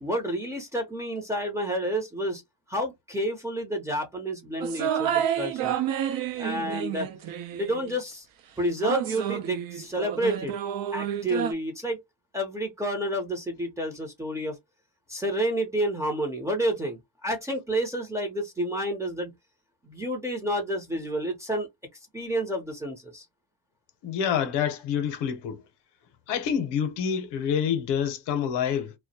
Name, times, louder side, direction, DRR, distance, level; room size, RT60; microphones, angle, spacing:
voice 1, 0.0-2.4 2.7-5.8 6.3-7.1 7.5-8.3 8.6-10.5 10.9-12.0 12.3-14.6 15.1-19.3 19.8-21.7 22.1-23.2, right 1 dB, 5° right, 0.6 m, -29 dB
sound 1, 4.6-8.0 8.8-11.5, right 10 dB, 50° right, 0.5 m, -30 dB
voice 2, 24.0-25.6 26.3-28.9, left 8 dB, 65° left, 0.7 m, -27 dB
2.2 x 2.1 x 2.7 m
cardioid pair, 125°, 45 cm